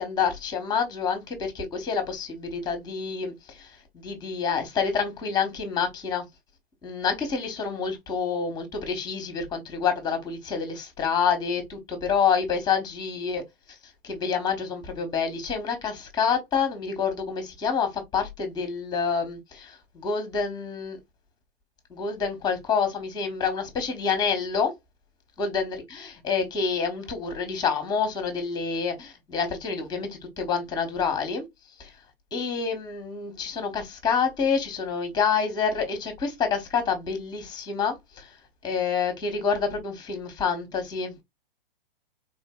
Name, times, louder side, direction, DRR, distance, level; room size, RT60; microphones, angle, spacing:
voice 1, 0.0-6.2 6.8-13.4 14.0-21.0 21.9-24.7 25.4-31.4 31.8-31.9 32.3-38.3 38.6-41.2, left 6 dB, 15° left, 1.1 m, -28 dB
3.7 x 2.5 x 2.3 m
hypercardioid pair, 120°, 29 cm